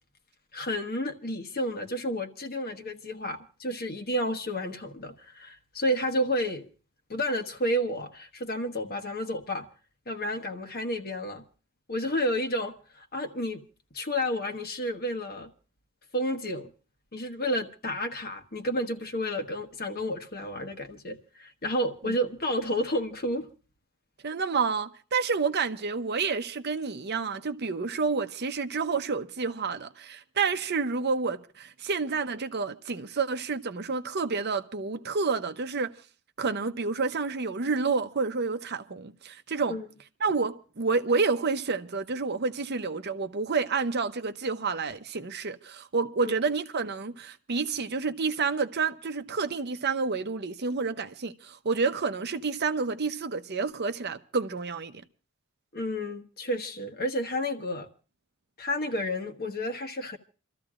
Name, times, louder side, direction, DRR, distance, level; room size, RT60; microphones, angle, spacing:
voice 1, 0.5-6.7 7.1-9.7 10.1-11.4 11.9-13.6 13.9-15.5 16.1-16.7 17.1-23.5 39.7-39.9 46.2-46.3 55.7-57.9 58.6-60.2, equal, 45° left, 1.3 m, -31 dB
voice 2, 24.2-35.9 36.4-39.8 40.2-54.9, right 4 dB, 50° right, 0.8 m, -29 dB
28.5 x 14.0 x 2.5 m
head